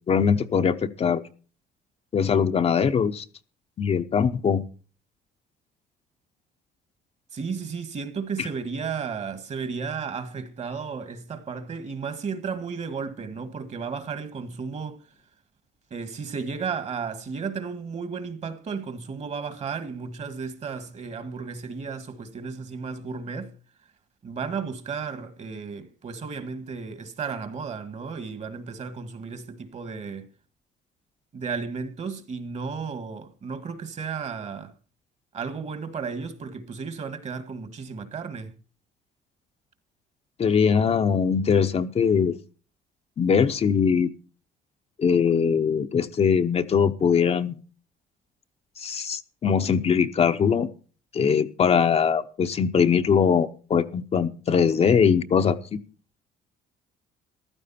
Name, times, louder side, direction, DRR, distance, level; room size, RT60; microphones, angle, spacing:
voice 1, 0.1-1.2 2.1-3.2 3.8-4.6 8.4-8.5 40.4-42.4 43.2-44.1 45.0-47.6 48.8-50.7 51.1-55.6, left 6 dB, 35° left, 0.8 m, -21 dB
voice 2, 7.3-15.0 15.9-23.5 24.2-30.3 31.3-34.7 35.3-38.5, right 5 dB, 40° right, 1.8 m, -33 dB
14.5 x 12.5 x 4.3 m
cardioid pair, 110°, 17 cm